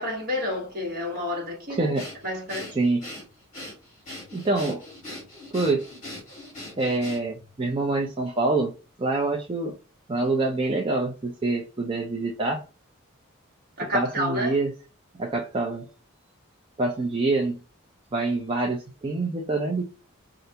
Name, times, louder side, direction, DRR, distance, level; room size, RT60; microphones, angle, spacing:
voice 1, 0.0-1.9 2.2-2.7 13.8-14.6, left 1 dB, 45° right, 1.3 m, -29 dB
voice 2, 1.7-2.1 2.8-3.1 4.3-4.8 5.5-5.9 6.8-8.7 9.0-9.7 10.1-12.6 13.9-14.7 15.2-15.9 16.8-17.6 18.1-19.8, right 2 dB, 25° right, 0.4 m, -26 dB
Breathing, 1.9-7.5, left 1 dB, 35° left, 1.8 m, -40 dB
3.2 x 2.5 x 2.8 m
head